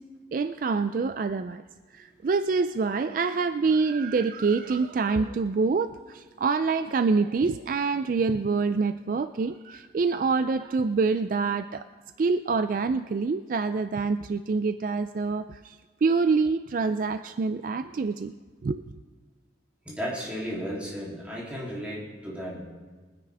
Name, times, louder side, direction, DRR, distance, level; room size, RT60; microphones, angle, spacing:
voice 1, 0.3-1.6 1.9-11.9 12.2-18.3 18.6-18.8, right 4 dB, 50° right, 10 dB, 0.3 m, -26 dB
voice 2, 19.8-22.6, equal, 5° right, -6 dB, 2.9 m, -34 dB
23.5 x 9.9 x 3.4 m, 1.3 s
head